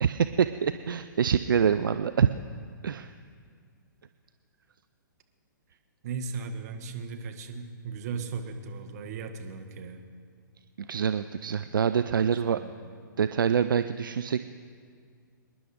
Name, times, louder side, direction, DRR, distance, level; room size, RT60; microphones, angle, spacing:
voice 1, 0.0-2.3 2.8-3.1 10.8-12.6 13.2-14.5, right 7 dB, 70° right, 11 dB, 0.5 m, -25 dB
voice 2, 6.0-10.0 11.8-12.9, right 5 dB, 50° right, 5 dB, 1.8 m, -37 dB
26.5 x 11.0 x 5.1 m, 2.1 s
figure-of-eight pair, 125°, 11 cm